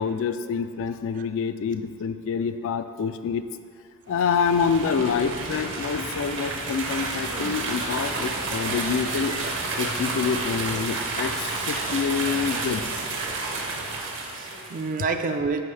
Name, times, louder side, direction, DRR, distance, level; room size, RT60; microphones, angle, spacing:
voice 1, 0.0-3.4 4.1-9.3 9.8-12.8 13.1-13.2, left 6 dB, 60° left, 10 dB, 0.3 m, -27 dB
sound 1, 4.1-14.9, right 3 dB, 55° right, 0.8 m, -30 dB
voice 2, 13.6-15.6, right 4 dB, 35° right, 7 dB, 0.4 m, -29 dB
11.0 x 4.5 x 3.3 m, 2.2 s
head